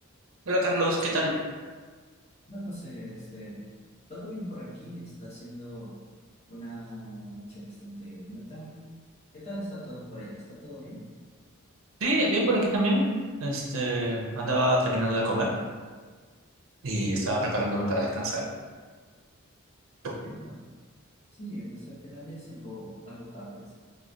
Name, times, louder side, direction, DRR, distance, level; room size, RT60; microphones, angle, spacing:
voice 1, 0.5-1.3 12.0-13.1 13.4-15.5 16.8-18.4 20.0-20.1, right 1 dB, 75° right, -2 dB, 0.6 m, -26 dB
voice 2, 2.5-3.6 4.1-5.9 6.5-8.7 9.3-11.0 20.2-20.6 21.4-23.7, equal, 30° left, -10 dB, 1.2 m, -41 dB
4.4 x 2.2 x 2.5 m, 1.5 s
head